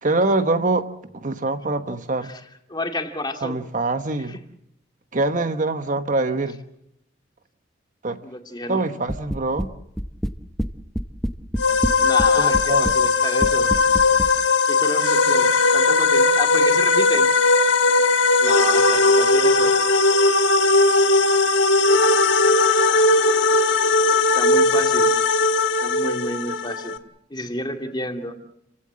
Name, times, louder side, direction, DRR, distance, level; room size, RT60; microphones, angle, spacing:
voice 1, 0.0-2.3 3.4-4.4 5.1-6.6 8.0-8.2 8.7-9.7 12.4-12.9, right 2 dB, 45° right, 9 dB, 1.2 m, -24 dB
voice 2, 2.7-3.6 4.3-4.4 8.2-8.8 12.0-13.7 14.7-17.3 18.4-19.7 23.6-23.8 24.3-25.1 25.8-27.0 27.3-28.3, left 1 dB, 25° left, 4 dB, 2.4 m, -30 dB
sound 1, 9.1-9.7 10.0-10.7 11.0-12.3 12.5-13.0 13.4-14.3, equal, ahead, 0.9 m, -25 dB
sound 2, 11.6-27.0, left 3 dB, 85° left, 1.4 m, -18 dB
30.0 x 16.5 x 7.6 m, 0.80 s
head